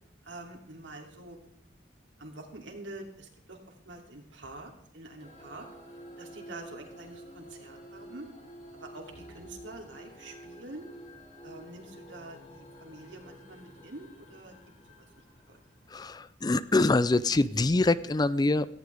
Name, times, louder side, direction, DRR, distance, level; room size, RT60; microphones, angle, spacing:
voice 1, 0.2-1.4 2.2-3.6 3.8-5.7 6.2-8.3 8.7-10.9 11.4-14.6 15.5-15.6, right 2 dB, 90° right, 2 dB, 2.8 m, -46 dB
sound 1, 5.2-16.1, equal, 45° left, 3.5 m, -50 dB
voice 2, 15.9-18.7, left 2 dB, 20° left, 16 dB, 0.4 m, -25 dB
17.5 x 15.0 x 3.5 m, 0.67 s
head